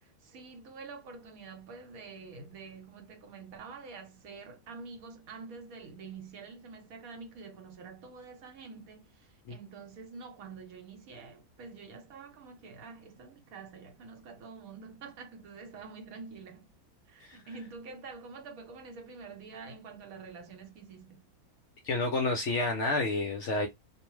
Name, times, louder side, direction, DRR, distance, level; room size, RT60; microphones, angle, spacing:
voice 1, 0.0-16.7 17.1-21.3, right 4 dB, 70° right, 1.1 m, -47 dB
voice 2, 21.8-23.7, left 2 dB, 65° left, 0.7 m, -30 dB
2.5 x 2.1 x 3.0 m
omnidirectional pair, 1.6 m